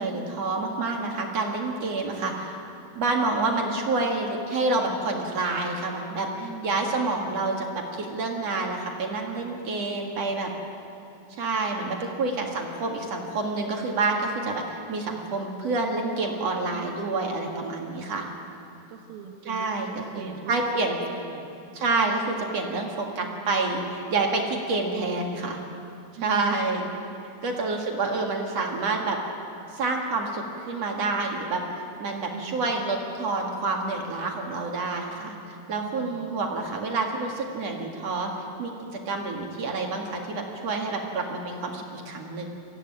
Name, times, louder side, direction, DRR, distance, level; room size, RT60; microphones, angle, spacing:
voice 1, 0.0-2.6 3.0-10.5 11.4-18.3 19.5-21.0 21.7-25.6 26.2-26.9 27.4-29.2 29.7-38.3 38.6-38.7 39.1-42.5, right 3 dB, 50° right, 1 dB, 2.8 m, -28 dB
voice 2, 6.4-7.0 11.8-12.7 16.7-17.0 18.9-21.5 23.2-23.9 26.2-26.7 27.5-27.8 32.3-32.7 35.8-36.4, right 6 dB, 85° right, -2 dB, 3.3 m, -42 dB
24.0 x 16.0 x 9.1 m, 2.6 s
omnidirectional pair, 4.2 m